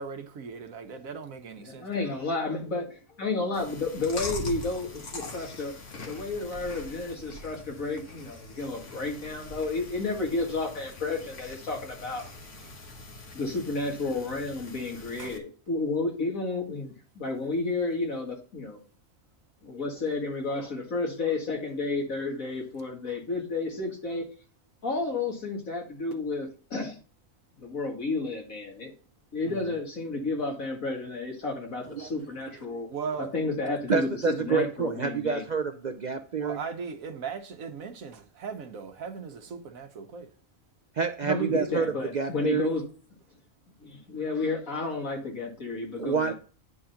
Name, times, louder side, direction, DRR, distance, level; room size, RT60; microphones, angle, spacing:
voice 1, 0.0-2.0 15.2-15.4 29.5-29.8 32.9-33.3 36.4-40.3, right 6 dB, 85° right, 1.4 m, -38 dB
voice 2, 1.6-12.2 13.3-18.8 19.6-24.3 24.8-27.0 27.6-28.9 29.3-32.9 33.3-35.5 41.2-42.8 43.8-46.3, left 3 dB, 90° left, 2.6 m, -31 dB
Chewing mastication, 3.5-15.4, left 2 dB, 65° left, 1.6 m, -42 dB
voice 3, 33.9-36.6 41.0-42.7 46.0-46.3, right 6 dB, 55° right, 0.5 m, -28 dB
9.5 x 3.8 x 5.7 m
omnidirectional pair, 1.4 m